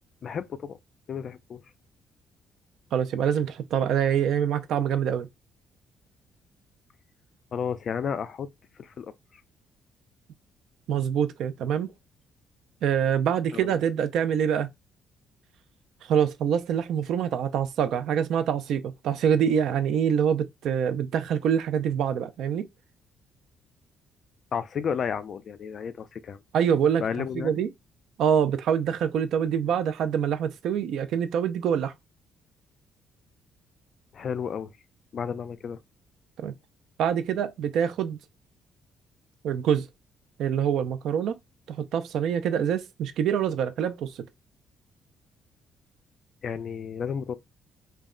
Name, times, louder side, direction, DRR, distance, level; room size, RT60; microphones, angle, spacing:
voice 1, 0.2-0.8 1.1-1.6 7.5-8.5 8.8-9.1 13.5-13.7 24.5-26.4 27.0-27.6 34.1-34.7 35.1-35.8 46.4-47.4, left 7 dB, 45° left, 0.3 m, -32 dB
voice 2, 2.9-5.3 10.9-11.9 12.8-14.7 16.0-22.7 26.5-27.0 27.3-27.7 28.2-31.9 36.4-36.5 37.0-38.2 39.4-39.9 40.4-41.4 41.7-44.2, right 8 dB, 70° right, 0.4 m, -25 dB
2.2 x 2.1 x 3.6 m
cardioid pair, 135°, 0 cm